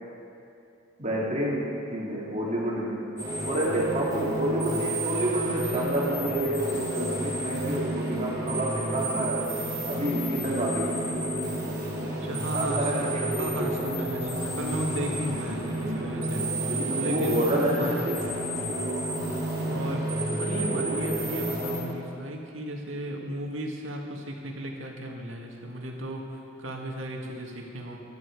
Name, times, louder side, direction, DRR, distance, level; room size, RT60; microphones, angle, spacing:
voice 1, 1.0-3.1 3.4-9.5 9.9-11.2 12.5-13.7 16.7-18.2 20.3-21.1, right 1 dB, 35° right, -4 dB, 2.7 m, -29 dB
sound 1, 3.2-21.8, right 1 dB, 20° right, 4.0 m, -30 dB
voice 2, 12.2-13.1 13.4-16.7 17.0-17.5 17.8-18.1 19.6-20.1 20.4-28.0, equal, 75° right, 0 dB, 2.0 m, -35 dB
19.5 x 12.0 x 4.8 m, 2.6 s
head